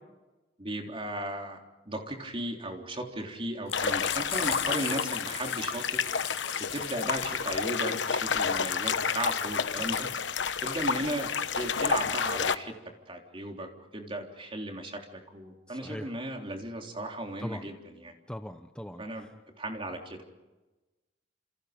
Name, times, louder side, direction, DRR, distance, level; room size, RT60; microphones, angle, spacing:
voice 1, 0.6-1.6 1.9-6.0 6.7-10.1 10.6-11.3 11.6-12.7 13.1-18.1 19.0-19.3 19.6-20.2, right 1 dB, 30° right, 2 dB, 3.7 m, -36 dB
sound 1, 3.7-12.5, left 6 dB, 90° left, 1.1 m, -30 dB
Frying (food), 3.7-12.4, left 8 dB, 35° left, 6.4 m, -40 dB
voice 2, 15.7-16.1 17.4-17.7 18.3-19.3, equal, 5° left, 7 dB, 0.9 m, -40 dB
29.5 x 28.5 x 5.3 m, 1.1 s
head